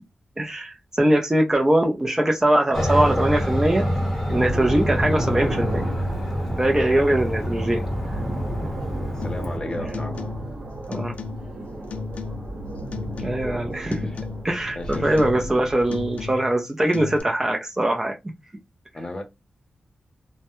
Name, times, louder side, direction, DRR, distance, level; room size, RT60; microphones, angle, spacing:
voice 1, 0.4-3.9 4.3-5.8 6.6-7.8 10.9-11.2 13.2-14.1 14.4-18.2, right 1 dB, 20° right, 0.5 m, -22 dB
Aircraft, 2.7-9.6, equal, 5° left, 1.1 m, -27 dB
sound 1, 4.3-16.3, right 1 dB, 50° right, 1.1 m, -33 dB
voice 2, 9.1-10.2 14.1-14.2 14.7-15.2 18.9-19.2, left 2 dB, 30° left, 0.7 m, -34 dB
sound 2, 9.2-9.6 9.9-10.6 10.9-11.6 11.9-12.6 12.9-13.6 13.9-14.6 14.9-15.6 15.9-16.6 16.9-17.2, left 5 dB, 65° left, 0.3 m, -35 dB
2.1 x 2.1 x 2.9 m
wide cardioid pair, 85°, 2 cm